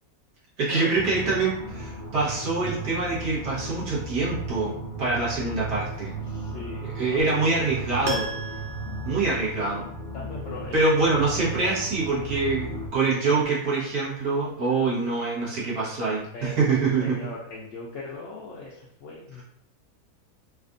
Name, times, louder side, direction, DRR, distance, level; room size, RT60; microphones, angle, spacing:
voice 1, 0.6-4.7 5.0-6.1 6.8-8.3 9.1-9.9 10.7-17.2, right 3 dB, 85° right, -7 dB, 1.8 m, -25 dB
sound 1, 0.9-12.9, right 2 dB, 40° left, 0.4 m, -36 dB
voice 2, 6.3-7.4 10.1-11.1 11.4-11.8 15.5-15.7 16.3-19.4, left 3 dB, 65° left, -4 dB, 0.9 m, -40 dB
Bass guitar, 7.2-13.4, right 10 dB, 90° left, 1.3 m, -44 dB
Piano, 8.0-10.1 10.4-10.5, equal, 60° right, 0.8 m, -34 dB
4.2 x 2.3 x 2.6 m, 0.73 s
omnidirectional pair, 1.6 m